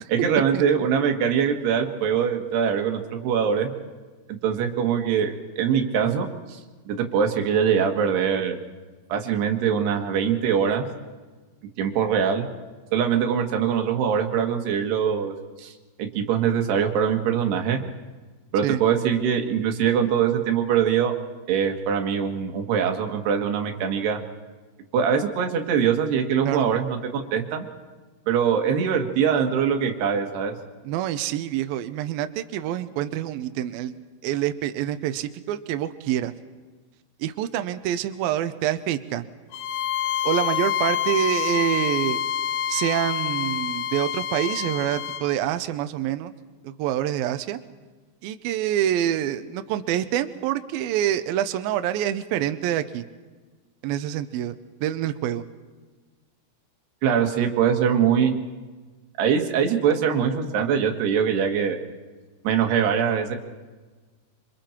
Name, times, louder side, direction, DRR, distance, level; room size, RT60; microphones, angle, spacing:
voice 1, 0.1-3.7 4.3-6.6 6.9-8.6 9.1-10.9 11.8-12.5 12.9-15.3 15.6-15.7 16.0-17.8 18.5-21.2 21.5-24.2 24.9-27.7 28.3-30.5 57.0-58.4 59.2-61.8 62.4-63.4, right 7 dB, 70° right, 4 dB, 3.6 m, -23 dB
voice 2, 30.8-33.9 34.2-36.3 37.2-39.2 40.2-42.2 42.7-46.3 46.6-47.6 48.2-53.0 53.8-54.6 54.8-55.4, right 11 dB, 85° right, 10 dB, 2.1 m, -26 dB
Bowed string instrument, 39.5-45.3, left 10 dB, 70° left, 2.2 m, -27 dB
27.0 x 26.0 x 4.5 m, 1.3 s
omnidirectional pair, 5.2 m